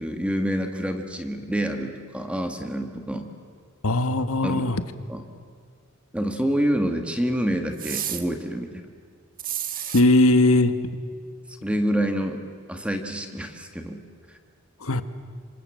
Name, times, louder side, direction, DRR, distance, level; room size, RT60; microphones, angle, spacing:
voice 1, 0.0-3.3 4.4-4.7 5.1-5.2 6.1-8.9 11.6-12.4 12.7-14.0 14.3-14.4, equal, 5° right, 5 dB, 1.7 m, -27 dB
voice 2, 3.8-4.8 9.9-10.7 14.8-15.0, left 2 dB, 80° left, 10 dB, 1.4 m, -19 dB
sound 1, 7.8-8.2 9.4-10.0, right 10 dB, 40° right, 1.6 m, -30 dB
27.5 x 25.0 x 7.7 m, 2.1 s
head